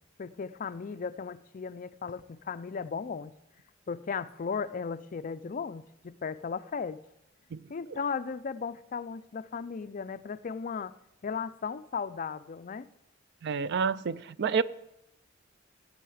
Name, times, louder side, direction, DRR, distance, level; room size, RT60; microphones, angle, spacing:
voice 1, 0.2-3.3 3.9-7.0 7.7-10.9 11.2-12.9, left 5 dB, 45° left, 0.4 m, -36 dB
voice 2, 13.4-14.6, right 5 dB, 60° right, 0.4 m, -28 dB
16.0 x 7.8 x 4.9 m
head